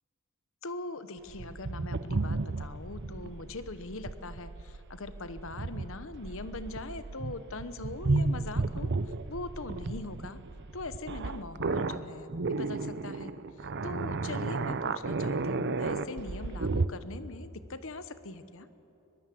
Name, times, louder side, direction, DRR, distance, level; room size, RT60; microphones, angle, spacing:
voice 1, 0.6-8.9 9.3-10.4 10.7-13.3 13.6-18.7, left 2 dB, 65° left, 12 dB, 1.1 m, -41 dB
sound 1, 1.3-16.9, right 3 dB, 55° right, 0.7 m, -33 dB
23.0 x 21.0 x 7.7 m, 2.9 s
head